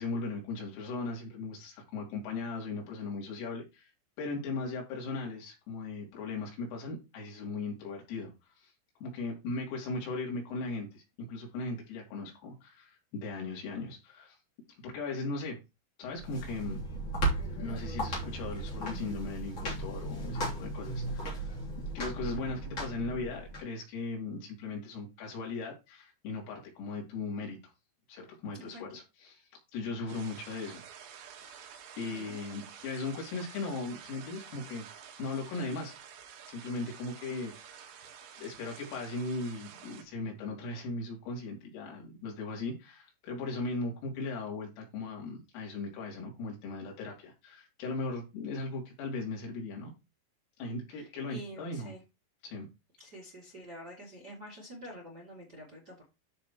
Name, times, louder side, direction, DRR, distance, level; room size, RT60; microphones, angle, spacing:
voice 1, 0.0-3.9 4.2-8.3 8.6-8.7 9.0-11.0 11.3-14.4 14.8-15.6 16.0-16.8 17.6-21.5 22.0-27.6 28.1-29.4 29.7-30.8 31.4-31.7 32.0-34.9 35.2-36.0 36.5-37.9 38.4-49.9 50.6-51.9 52.4-52.7, left 3 dB, 85° left, 5.3 m, -38 dB
sound 1, 16.1-23.6, right 2 dB, 35° left, 3.4 m, -36 dB
sound 2, 30.1-40.0, right 8 dB, 70° right, 3.7 m, -50 dB
voice 2, 32.0-32.3 38.0-38.1 50.9-52.0 53.0-56.0, equal, 30° right, 1.9 m, -47 dB
13.5 x 5.1 x 3.0 m
omnidirectional pair, 5.7 m